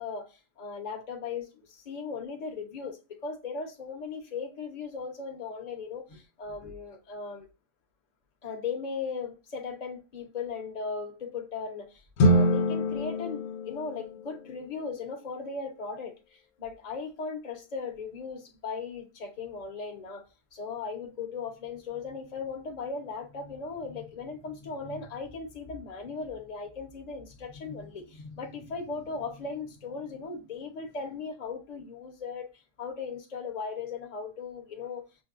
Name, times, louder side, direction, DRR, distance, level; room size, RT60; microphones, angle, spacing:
voice 1, 0.0-7.5 8.4-20.2 20.5-32.5 32.8-35.0, left 4 dB, 35° left, 0.9 m, -37 dB
sound 1, 12.2-14.6, equal, 75° left, 1.0 m, -25 dB
6.1 x 2.3 x 2.4 m
omnidirectional pair, 1.4 m